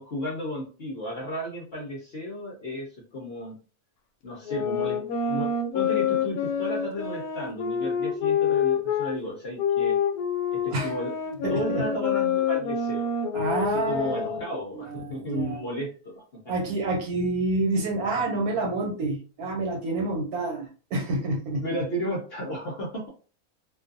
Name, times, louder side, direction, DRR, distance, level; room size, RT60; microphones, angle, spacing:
voice 1, 0.0-3.6 4.2-10.0 10.5-11.1 11.5-13.1 13.6-16.5 21.6-23.1, equal, 55° left, -2 dB, 0.7 m, -34 dB
sound 1, 4.4-9.1 9.6-14.5, left 7 dB, 80° left, 1.1 m, -27 dB
voice 2, 11.4-11.8 13.3-14.4 14.7-15.6 16.5-21.6, right 2 dB, 70° right, 1 dB, 1.2 m, -28 dB
2.5 x 2.3 x 2.5 m, 0.37 s
omnidirectional pair, 1.6 m